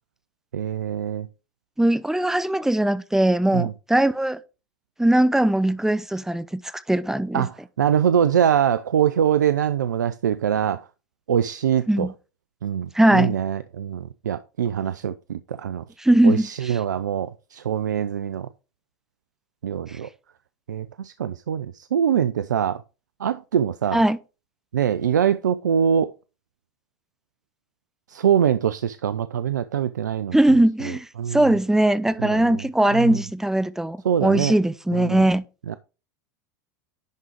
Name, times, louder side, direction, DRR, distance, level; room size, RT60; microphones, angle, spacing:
voice 1, 0.5-1.3 3.5-3.7 7.3-10.8 11.3-12.1 12.6-15.8 16.2-18.5 19.6-20.1 20.7-22.8 23.2-24.0 24.7-26.1 28.1-30.4 30.8-30.9 31.2-31.5 32.2-32.7 32.9-33.2 34.0-34.5 34.9-35.3 35.7-35.8, right 9 dB, 90° right, 0.4 m, -23 dB
voice 2, 1.8-4.4 5.0-6.6 6.9-7.5 11.9-12.1 12.9-13.3 16.0-16.7 23.9-24.2 30.3-35.4, right 1 dB, 5° right, 0.7 m, -20 dB
10.5 x 3.8 x 4.6 m
hypercardioid pair, 90°, 9 cm